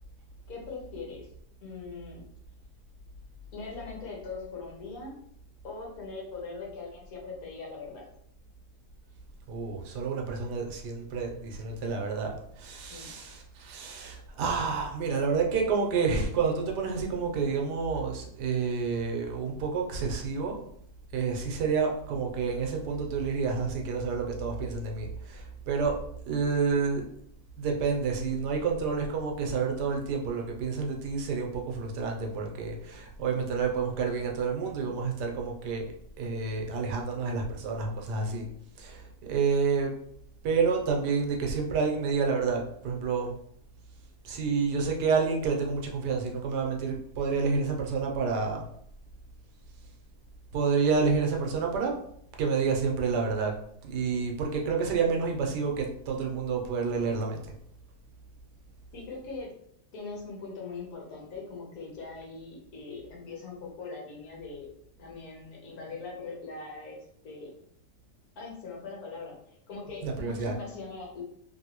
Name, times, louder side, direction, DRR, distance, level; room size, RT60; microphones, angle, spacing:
voice 1, 0.5-1.3 1.6-2.2 3.5-5.2 5.6-8.0 12.9-13.1 58.9-59.5 59.9-64.7 65.0-67.0 67.2-67.6 68.4-71.2, left 4 dB, 65° left, -2 dB, 1.3 m, -41 dB
voice 2, 9.5-12.3 12.6-20.6 21.1-26.0 26.3-27.0 27.6-35.8 36.2-38.5 38.8-39.9 40.4-43.3 44.2-48.7 50.5-51.9 52.4-53.5 53.8-57.5 70.0-70.5, right 5 dB, 85° right, 1 dB, 1.2 m, -29 dB
3.0 x 2.6 x 2.8 m, 0.69 s
omnidirectional pair, 1.8 m